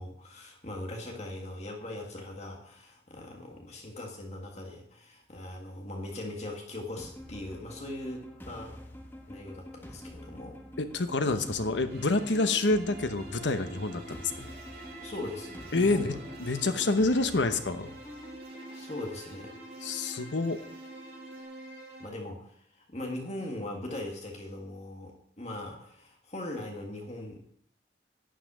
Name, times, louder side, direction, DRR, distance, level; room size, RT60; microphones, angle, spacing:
voice 1, 0.0-8.8 9.3-10.6 15.0-16.2 18.7-19.5 22.0-27.4, left 1 dB, 35° left, 1 dB, 1.7 m, -40 dB
sound 1, 7.0-18.4, equal, 10° left, 1.2 m, -47 dB
voice 2, 10.8-14.5 15.7-17.9 19.8-20.6, left 3 dB, 80° left, 9 dB, 1.0 m, -28 dB
sound 2, 11.9-22.1, right 2 dB, 55° right, 2.3 m, -48 dB
sound 3, 12.8-21.4, equal, 30° right, 2.7 m, -51 dB
11.5 x 5.7 x 8.8 m, 0.66 s
head